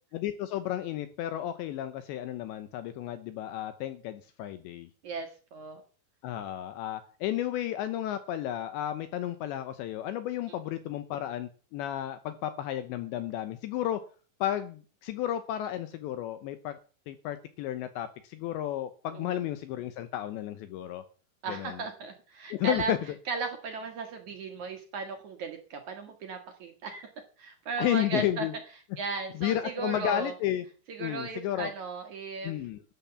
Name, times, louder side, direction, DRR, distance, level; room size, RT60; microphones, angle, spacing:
voice 1, 0.1-4.9 6.2-14.0 14.4-16.8 17.1-21.0 21.5-21.8 22.5-23.0 27.8-28.5 29.4-30.6 31.0-31.7 32.4-32.8, left 12 dB, 75° left, 11 dB, 2.9 m, -32 dB
voice 2, 5.0-5.8 19.1-19.4 21.4-22.9 23.3-27.1 27.4-28.5 29.0-30.3 30.9-32.5, right 4 dB, 55° right, 6 dB, 2.2 m, -36 dB
13.0 x 9.3 x 7.0 m, 0.39 s
omnidirectional pair, 5.7 m